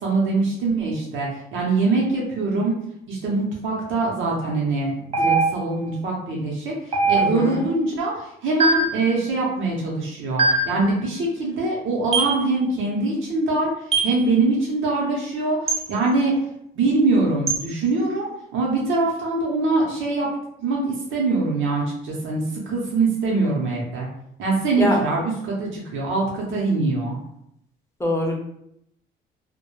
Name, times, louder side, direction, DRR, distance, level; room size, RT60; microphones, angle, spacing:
voice 1, 0.0-2.7 3.1-13.7 14.0-16.3 16.8-20.3 20.6-24.1 24.4-27.2, right 3 dB, 80° right, -3 dB, 0.7 m, -23 dB
sound 1, 5.1-5.8 6.9-7.6 8.6-9.0 10.4-10.8 12.1-12.4 13.9-14.2 15.7-15.9 17.5-17.7, right 3 dB, 30° right, 0.4 m, -21 dB
voice 2, 7.1-7.7 24.8-25.0 28.0-28.3, left 1 dB, 15° left, -1 dB, 0.7 m, -23 dB
2.2 x 2.1 x 3.0 m, 0.74 s
cardioid pair, 90°, 20 cm